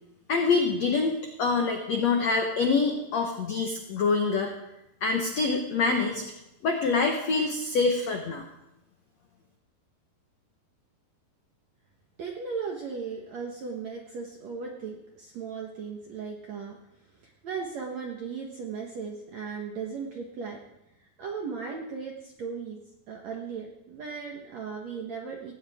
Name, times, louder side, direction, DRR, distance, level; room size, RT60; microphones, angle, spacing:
voice 1, 0.3-4.5 5.0-6.2 6.6-8.4, left 4 dB, 90° left, 3 dB, 1.5 m, -25 dB
voice 2, 12.2-16.8 17.2-20.6 21.0-22.8 23.1-25.5, right 5 dB, 70° right, 0 dB, 1.7 m, -37 dB
17.5 x 17.0 x 3.6 m, 0.87 s
omnidirectional pair, 5.0 m